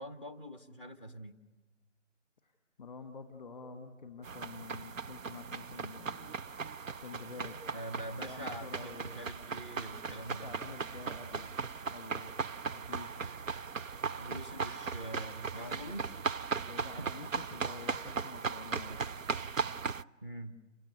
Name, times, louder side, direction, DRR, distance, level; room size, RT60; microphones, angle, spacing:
voice 1, 0.0-1.4 7.7-10.5 13.2-13.3 14.2-16.1 17.0-17.1 20.2-20.6, equal, 20° right, 10 dB, 1.1 m, -44 dB
voice 2, 2.8-6.4 7.0-7.6 8.2-9.1 10.2-11.6 11.8-12.3 12.7-13.3 16.6-19.2, left 4 dB, 10° left, 7 dB, 1.1 m, -48 dB
sound 1, 4.2-20.0, right 5 dB, 90° right, 0.7 m, -38 dB
29.0 x 16.5 x 9.8 m, 1.2 s
figure-of-eight pair, 165°, 38 cm